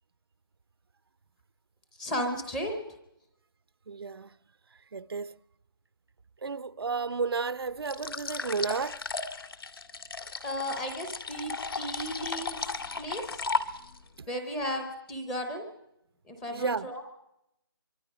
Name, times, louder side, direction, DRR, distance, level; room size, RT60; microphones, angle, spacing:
voice 1, 2.0-2.8 10.4-12.7 13.0-13.4 14.3-15.7 16.3-17.0, equal, 5° left, 0.7 m, -34 dB
voice 2, 3.9-4.4 4.9-5.4 6.4-9.0 14.2-14.3 16.5-16.9, right 4 dB, 75° right, 0.7 m, -32 dB
sound 1, 7.8-14.1, left 4 dB, 70° left, 1.8 m, -35 dB
25.0 x 24.0 x 5.0 m
hypercardioid pair, 180°, 13 cm